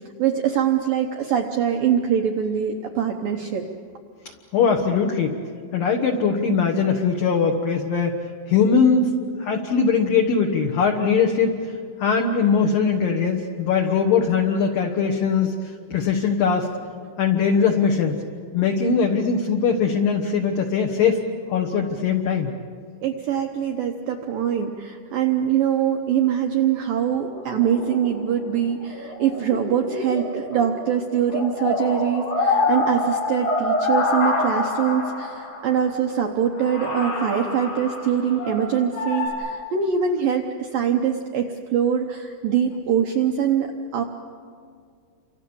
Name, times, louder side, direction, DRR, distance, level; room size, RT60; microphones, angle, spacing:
voice 1, 0.2-3.6 23.0-44.0, right 8 dB, 80° right, 3 dB, 2.0 m, -23 dB
voice 2, 4.5-5.4 5.7-8.2 8.5-9.1 9.4-16.7 17.2-18.2 18.5-21.2 21.5-22.5, left 5 dB, 65° left, 2 dB, 2.4 m, -21 dB
sound 1, 27.3-30.9 31.2-35.7 36.2-36.3 36.5-39.3, left 2 dB, 90° left, 11.0 m, -26 dB
30.0 x 26.0 x 7.1 m, 2.2 s
omnidirectional pair, 5.7 m